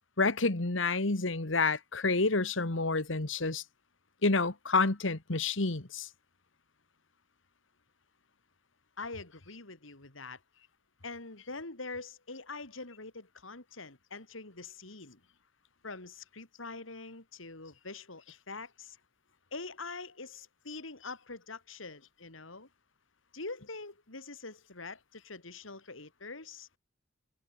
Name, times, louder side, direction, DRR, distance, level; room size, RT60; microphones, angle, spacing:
voice 1, 0.2-3.6 4.2-6.1, left 3 dB, 70° left, 1.8 m, -29 dB
voice 2, 9.0-10.4 11.0-15.2 15.8-19.0 19.5-22.7 23.3-26.8, left 3 dB, 90° left, 3.6 m, -44 dB
head